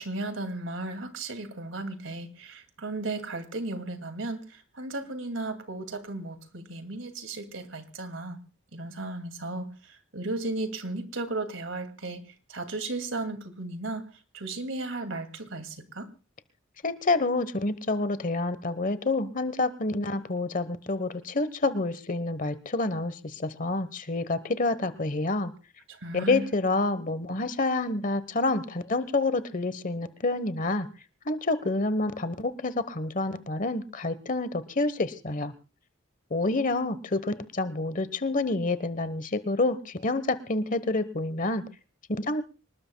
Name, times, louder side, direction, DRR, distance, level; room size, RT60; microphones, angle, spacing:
voice 1, 0.0-8.4 8.7-12.2 12.5-14.1 14.3-16.1 25.9-26.5, right 2 dB, 90° right, 9 dB, 2.4 m, -35 dB
voice 2, 16.8-25.5 26.1-30.9 31.2-35.5 36.3-41.6 42.1-42.4, left 2 dB, 45° left, 13 dB, 1.1 m, -28 dB
25.5 x 20.0 x 2.3 m, 0.33 s
head